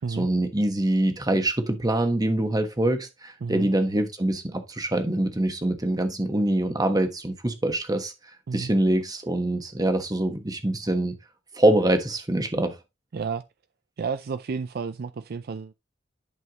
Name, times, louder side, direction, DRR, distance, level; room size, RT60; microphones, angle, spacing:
voice 1, 0.1-8.1 8.5-11.2 11.5-12.8, right 1 dB, 20° right, 1.3 m, -24 dB
voice 2, 3.4-3.7 8.5-8.7 13.1-13.4 14.0-15.7, right 5 dB, 55° right, 0.4 m, -31 dB
11.0 x 5.6 x 3.0 m
head